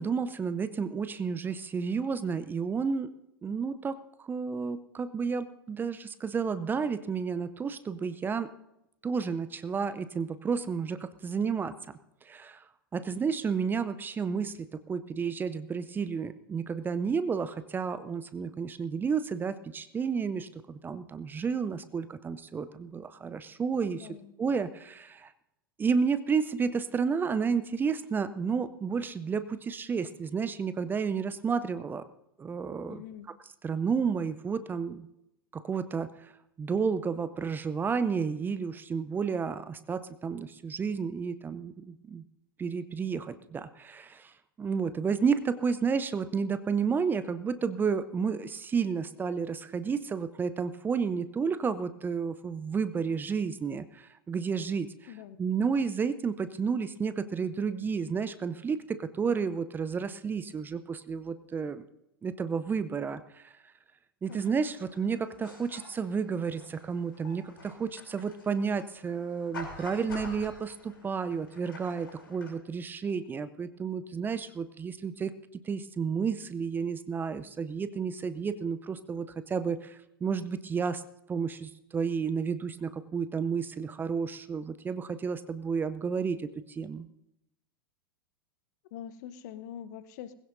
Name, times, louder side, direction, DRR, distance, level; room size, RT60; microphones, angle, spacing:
voice 1, 0.0-3.1 3.4-8.5 9.0-11.7 12.2-12.7 12.9-24.1 24.4-25.3 25.8-32.0 32.4-33.0 33.6-35.1 35.5-36.3 36.6-42.2 42.6-55.1 55.4-61.9 62.2-63.5 64.2-75.3 75.6-81.0 81.3-87.1, right 5 dB, 15° right, 13 dB, 0.6 m, -31 dB
voice 2, 23.9-24.3 32.9-33.3 55.1-55.4 64.3-64.6 88.9-90.4, left 10 dB, 50° left, 13 dB, 0.9 m, -44 dB
sound 1, 64.2-72.5, left 3 dB, 75° left, 3.4 m, -48 dB
20.0 x 16.5 x 2.7 m, 0.84 s
figure-of-eight pair, 95°, 12 cm